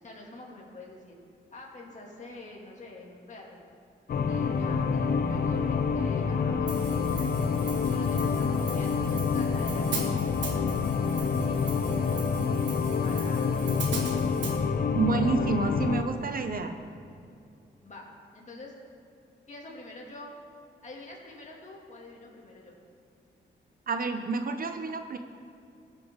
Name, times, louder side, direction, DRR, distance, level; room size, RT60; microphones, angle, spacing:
voice 1, 0.0-1.2 1.5-3.6 4.3-10.1 10.4-12.0 13.0-14.0 17.8-18.7 19.5-20.4 20.8-22.7, left 2 dB, 40° left, -2 dB, 2.3 m, -46 dB
sound 1, 4.1-16.0, left 5 dB, 55° left, 0.7 m, -27 dB
Hi-hat, 6.7-14.6, right 4 dB, 85° right, 1.6 m, -40 dB
voice 2, 14.9-16.8 23.9-25.2, right 4 dB, 50° right, 7 dB, 0.7 m, -29 dB
18.5 x 6.7 x 3.7 m, 2.5 s
cardioid pair, 90°, 19 cm